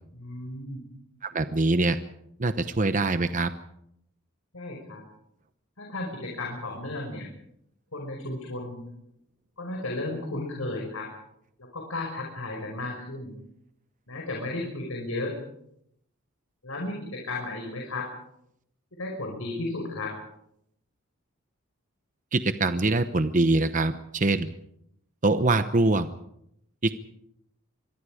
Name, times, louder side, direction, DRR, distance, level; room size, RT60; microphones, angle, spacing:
voice 1, 0.1-0.8 4.5-5.0 5.8-7.3 7.9-8.8 9.6-11.1 11.6-13.4 14.1-15.4 16.6-18.1 18.9-20.2, left 2 dB, 80° left, 0 dB, 5.5 m, -34 dB
voice 2, 1.2-2.0 2.4-3.5 22.3-24.5 25.2-26.1 26.8-26.9, right 2 dB, 35° right, 10 dB, 0.9 m, -24 dB
25.5 x 23.0 x 5.0 m, 0.76 s
head